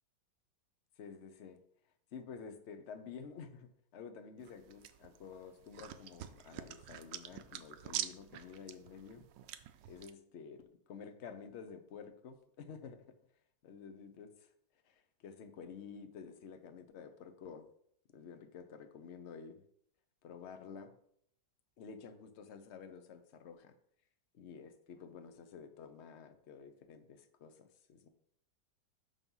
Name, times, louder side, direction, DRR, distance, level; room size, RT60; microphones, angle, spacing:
voice 1, 1.0-1.6 2.1-9.3 9.8-13.2 13.6-14.5 14.9-17.7 18.1-19.6 20.2-20.9 21.8-23.7 24.3-28.1, left 6 dB, 50° left, 8 dB, 0.9 m, -51 dB
sound 1, 4.4-10.1, right 11 dB, 90° right, 1.3 m, -46 dB
6.2 x 5.4 x 5.5 m, 0.67 s
omnidirectional pair, 1.9 m